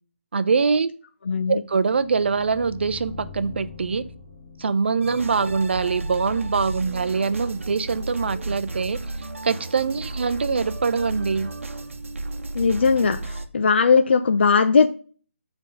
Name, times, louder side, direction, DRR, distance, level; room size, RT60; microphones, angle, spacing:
voice 1, 0.3-0.9 1.5-4.1 4.6-9.0 9.4-11.5, right 5 dB, 55° right, 12 dB, 0.5 m, -23 dB
voice 2, 1.3-1.6 12.5-14.9, left 5 dB, 55° left, 8 dB, 0.5 m, -19 dB
sound 1, 1.6-6.6, left 5 dB, 10° left, 3.7 m, -43 dB
sound 2, 5.0-13.5, right 2 dB, 75° right, 0.9 m, -33 dB
7.6 x 3.5 x 5.2 m, 0.41 s
hypercardioid pair, 170°, 7 cm